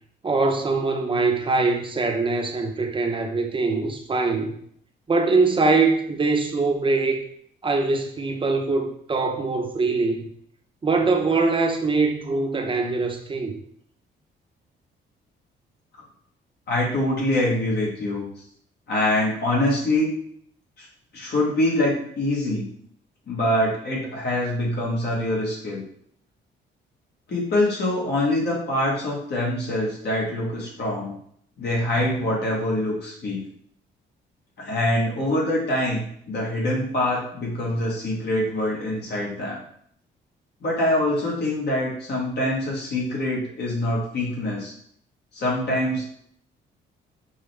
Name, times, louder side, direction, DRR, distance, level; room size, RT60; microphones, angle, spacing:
voice 1, 0.2-4.5 5.1-7.2 7.6-10.3 10.8-13.6, right 3 dB, 25° right, 3 dB, 0.7 m, -23 dB
voice 2, 16.7-18.3 18.9-20.1 20.8-20.9 21.1-22.7 23.3-25.8 27.3-31.1 31.6-33.4 34.6-39.6 40.6-44.7 45.3-46.0, left 1 dB, 60° left, -3 dB, 1.5 m, -24 dB
5.3 x 2.2 x 3.3 m, 0.65 s
cardioid pair, 90°, 20 cm